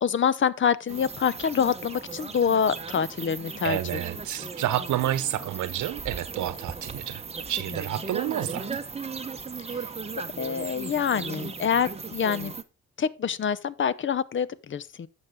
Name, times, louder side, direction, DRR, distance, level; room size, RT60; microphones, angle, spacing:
voice 1, 0.0-3.8 4.4-4.5 9.7-9.9 10.4-12.5 13.0-15.1, left 7 dB, 40° left, 0.8 m, -26 dB
sound 1, 0.9-12.6, right 4 dB, 20° right, 1.0 m, -37 dB
voice 2, 3.6-7.2 7.5-8.8, right 12 dB, 75° right, 1.0 m, -29 dB
11.5 x 7.3 x 3.7 m
cardioid pair, 90°, 30 cm